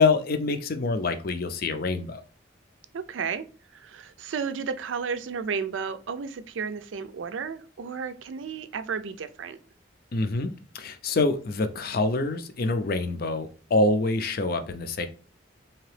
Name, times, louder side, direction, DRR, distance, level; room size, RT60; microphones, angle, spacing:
voice 1, 0.0-2.2 10.1-15.1, left 3 dB, 50° left, 0.5 m, -26 dB
voice 2, 2.9-3.5 3.7-9.6, right 6 dB, 90° right, 0.4 m, -33 dB
3.8 x 2.9 x 3.2 m
head